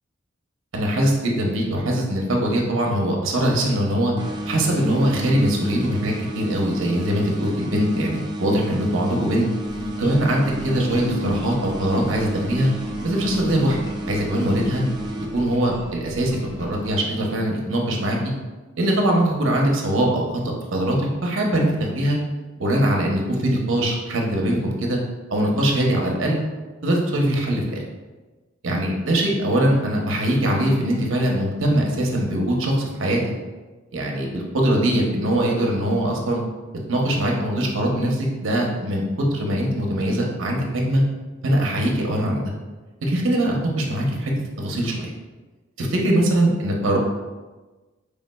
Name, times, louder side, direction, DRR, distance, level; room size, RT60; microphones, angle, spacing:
voice 1, 0.7-4.1 4.5-9.5 10.0-12.7 13.0-13.8 14.1-14.8 15.3-18.3 18.8-20.2 20.7-22.2 22.6-25.0 25.3-26.4 26.8-27.8 28.6-33.2 33.9-36.4 36.9-41.0 41.4-42.4 43.0-44.3 44.6-45.1 45.8-47.0, right 1 dB, 75° right, -1 dB, 0.8 m, -22 dB
sound 1, 4.2-15.9, right 1 dB, 20° right, 0.3 m, -32 dB
sound 2, 9.7-16.9, equal, 20° left, 0.7 m, -36 dB
5.1 x 3.5 x 2.2 m, 1.2 s
head